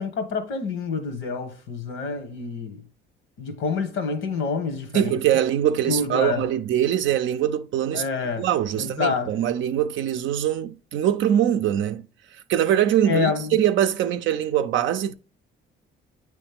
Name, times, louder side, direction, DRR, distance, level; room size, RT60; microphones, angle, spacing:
voice 1, 0.0-2.8 3.4-5.2 5.9-6.4 7.9-8.5 8.7-9.3 13.1-13.5, left 5 dB, 85° left, 1.2 m, -27 dB
voice 2, 4.9-8.0 8.4-12.0 12.5-15.1, right 10 dB, 75° right, 0.5 m, -23 dB
8.7 x 3.1 x 3.5 m
cardioid pair, 90°, 20 cm